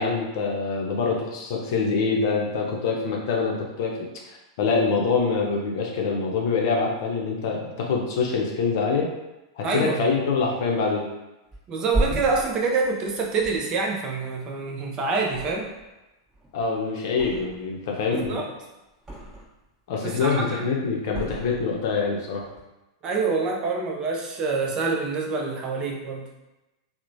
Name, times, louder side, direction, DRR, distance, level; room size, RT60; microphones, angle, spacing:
voice 1, 0.0-9.1 9.6-11.1 16.5-18.4 19.9-22.5, left 4 dB, 60° left, -1 dB, 0.6 m, -25 dB
voice 2, 9.6-10.1 11.7-15.7 18.1-18.5 20.0-20.7 23.0-26.3, right 4 dB, 35° right, 0 dB, 0.5 m, -26 dB
Thump thud, 11.5-14.8 15.2-16.0 16.3-17.8 18.1-19.6 20.0-20.5 21.1-22.1 22.4-22.6, right 1 dB, 15° right, 1.0 m, -34 dB
3.0 x 2.0 x 2.5 m, 1.0 s
hypercardioid pair, 100°, 2 cm